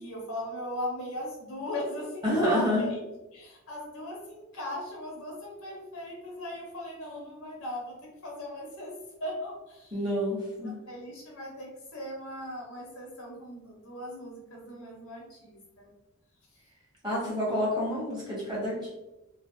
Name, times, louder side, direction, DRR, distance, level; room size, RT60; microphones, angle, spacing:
voice 1, 0.0-3.0 3.3-8.9 9.2-10.0 10.6-15.9, left 1 dB, 75° left, -1 dB, 0.9 m, -38 dB
voice 2, 2.2-2.9 9.9-10.7 17.0-18.9, equal, 20° right, -7 dB, 1.3 m, -28 dB
3.0 x 2.0 x 2.9 m, 1.0 s
head